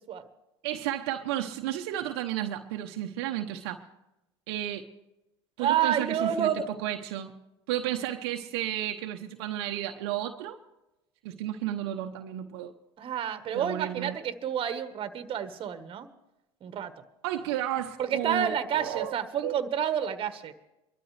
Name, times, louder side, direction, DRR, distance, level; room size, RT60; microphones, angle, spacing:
voice 1, 0.6-3.8 4.5-4.9 5.6-7.3 7.7-10.6 11.2-12.7 13.5-14.2 17.2-19.1 19.4-19.6, right 12 dB, 70° right, 0.9 m, -32 dB
voice 2, 5.6-6.6 13.0-16.1 16.6-16.9 18.0-20.5, right 9 dB, 40° right, 1.4 m, -29 dB
24.0 x 13.0 x 3.3 m
hypercardioid pair, 85°, 14 cm